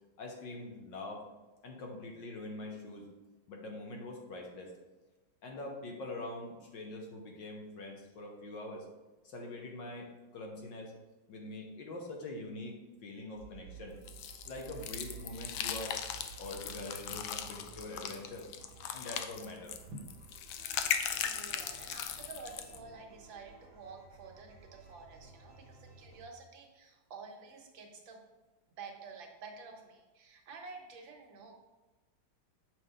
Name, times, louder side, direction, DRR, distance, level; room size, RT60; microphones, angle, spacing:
voice 1, 0.2-1.2 1.6-3.1 3.5-4.8 5.4-8.9 9.2-10.9 11.3-14.0 14.4-16.0 16.4-18.5 18.9-19.7, left 2 dB, 65° left, 1 dB, 1.7 m, -44 dB
sound 1, 13.3-26.2, right 7 dB, 35° right, 1.3 m, -54 dB
sound 2, 14.1-22.8, left 8 dB, 80° left, 1.4 m, -38 dB
voice 2, 21.1-28.2 28.8-31.5, right 4 dB, 70° right, 2 dB, 1.8 m, -50 dB
7.9 x 5.0 x 3.7 m, 1.2 s
omnidirectional pair, 2.3 m